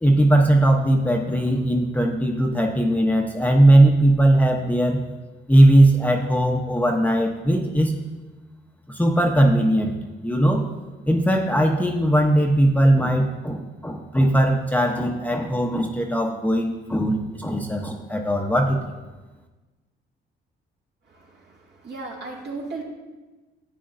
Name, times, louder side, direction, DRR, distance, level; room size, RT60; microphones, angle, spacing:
voice 1, 0.0-5.0 5.5-8.0 8.9-9.9 10.2-10.7 11.1-18.8, right 1 dB, 10° left, 1 dB, 0.8 m, -19 dB
voice 2, 21.0-22.8, right 3 dB, 60° right, -3 dB, 2.3 m, -36 dB
11.0 x 8.4 x 2.6 m, 1.2 s
cardioid pair, 90°, 20 cm